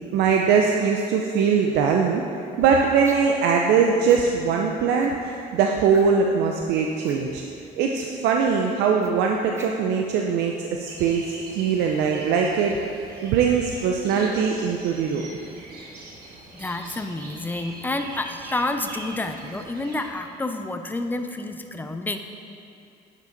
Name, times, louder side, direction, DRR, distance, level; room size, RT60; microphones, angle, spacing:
voice 1, 0.0-7.4 7.8-12.7 13.2-15.3, right 6 dB, 85° right, 1 dB, 0.6 m, -21 dB
sound 1, 3.0-3.4 4.0-4.3 5.0-5.3 5.9-6.3 7.0-7.2 9.0-10.0, right 2 dB, 15° right, 0.9 m, -45 dB
sound 2, 10.9-20.1, right 2 dB, 70° right, 1.6 m, -42 dB
voice 2, 16.5-22.2, left 2 dB, 10° left, 6 dB, 0.5 m, -29 dB
10.0 x 6.1 x 3.9 m, 2.6 s
cardioid pair, 110°, 17 cm